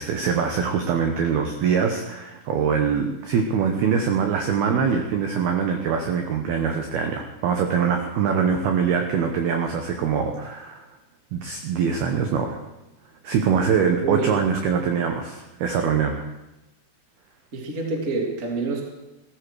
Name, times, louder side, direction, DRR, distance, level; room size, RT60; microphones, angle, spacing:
voice 1, 0.0-10.8 11.3-12.6 13.2-16.3, right 6 dB, 75° right, 4 dB, 2.3 m, -23 dB
voice 2, 14.0-14.3 17.5-18.9, right 3 dB, 35° right, 1 dB, 1.3 m, -27 dB
16.5 x 14.5 x 4.7 m, 0.97 s
omnidirectional pair, 5.8 m